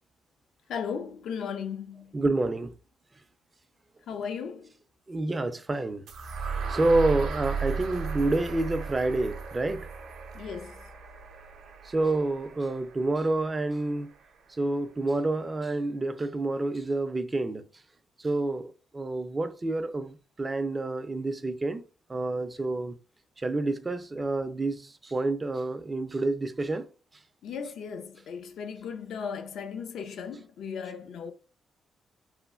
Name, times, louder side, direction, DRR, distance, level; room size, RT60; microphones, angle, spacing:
voice 1, 0.7-2.2 4.1-4.7 10.3-10.8 27.4-31.3, left 6 dB, 75° left, 0.4 m, -36 dB
voice 2, 2.1-2.7 5.1-6.0 6.7-9.9 11.9-14.1 14.6-17.6 18.2-21.8 22.1-22.9 23.4-26.9, right 2 dB, 25° right, 0.3 m, -28 dB
sound 1, 6.1-14.0, right 5 dB, 80° right, 0.5 m, -36 dB
3.1 x 2.4 x 2.3 m
cardioid pair, 105°, 0 cm